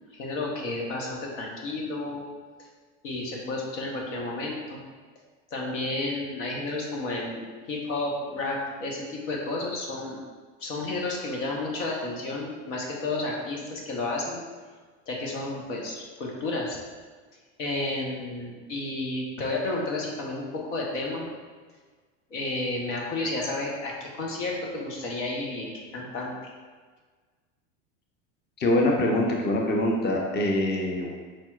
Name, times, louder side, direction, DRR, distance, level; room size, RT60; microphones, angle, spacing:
voice 1, 0.1-2.2 3.0-4.8 5.5-10.2 10.6-14.4 15.1-16.8 17.6-21.2 22.3-26.3, left 2 dB, 85° left, -2 dB, 1.1 m, -31 dB
voice 2, 28.6-31.1, left 1 dB, 30° left, 0 dB, 0.7 m, -24 dB
4.9 x 4.3 x 2.4 m, 1.5 s
supercardioid pair, 105°, 36 cm